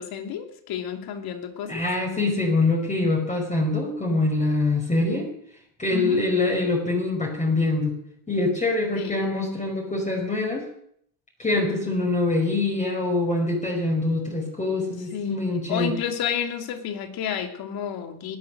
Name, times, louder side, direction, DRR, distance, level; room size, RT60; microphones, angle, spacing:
voice 1, 0.0-1.8 5.9-6.2 8.9-9.3 15.1-18.4, left 8 dB, 50° left, 5 dB, 3.0 m, -31 dB
voice 2, 1.6-5.3 5.8-7.9 8.3-10.7 11.4-15.9, left 2 dB, 15° left, -1 dB, 5.2 m, -24 dB
19.0 x 11.5 x 6.4 m, 0.70 s
hypercardioid pair, 80°, 48 cm